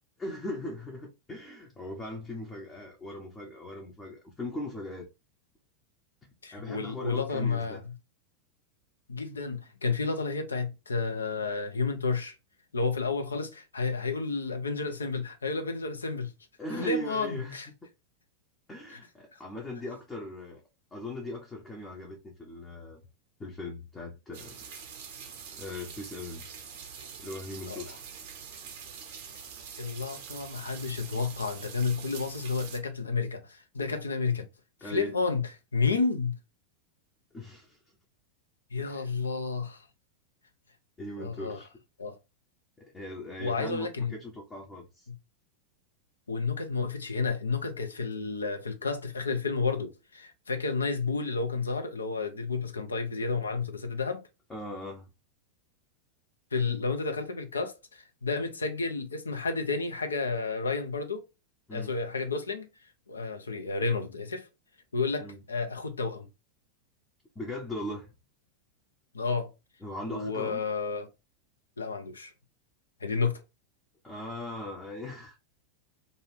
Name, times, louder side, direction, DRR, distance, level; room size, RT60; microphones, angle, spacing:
voice 1, 0.2-5.1 6.5-7.8 16.6-17.6 18.7-20.6 20.9-23.0 23.4-24.6 25.5-26.5 27.2-28.0 34.8-35.1 37.3-37.8 38.8-39.1 41.0-41.7 42.8-45.1 54.5-55.1 61.7-61.9 65.2-65.4 67.4-68.1 69.8-70.6 74.0-75.4, left 1 dB, 15° left, 0.6 m, -39 dB
voice 2, 6.4-7.9 9.1-12.3 12.7-16.3 16.8-17.7 18.9-19.0 19.3-19.4 27.7-28.0 29.8-34.5 34.8-36.4 38.7-39.9 41.2-41.6 42.0-42.2 43.4-44.1 45.1-45.2 46.3-54.2 56.5-61.3 61.7-64.5 64.9-66.3 69.1-69.5 70.1-71.1 71.8-72.3 73.0-73.4, left 4 dB, 75° left, 0.5 m, -31 dB
sound 1, 24.3-32.8, right 7 dB, 50° right, 0.7 m, -45 dB
2.6 x 2.3 x 3.2 m
figure-of-eight pair, 90°, 0 cm